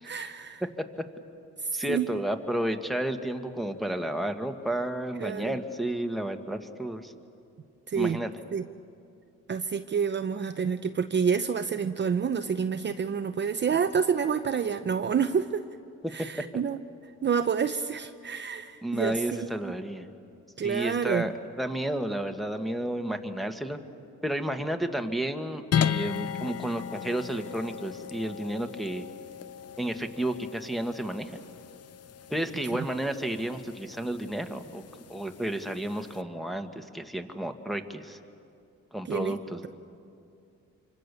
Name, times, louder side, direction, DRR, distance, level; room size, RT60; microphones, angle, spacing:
voice 1, 0.0-0.6 1.6-2.1 5.2-5.6 7.9-8.2 8.5-8.6 9.5-15.6 16.1-19.7 20.6-21.3 32.6-32.8 39.0-39.4, right 6 dB, 35° right, 8 dB, 0.7 m, -28 dB
voice 2, 1.7-7.1 8.0-8.3 18.8-20.1 20.6-23.8 24.2-29.1 29.8-31.3 32.3-34.8 35.1-38.2 38.9-39.7, right 1 dB, ahead, 5 dB, 1.7 m, -32 dB
sound 1, 25.7-36.2, left 9 dB, 55° left, 0.8 m, -36 dB
27.0 x 25.5 x 6.9 m, 2.5 s
cardioid pair, 90°, 30 cm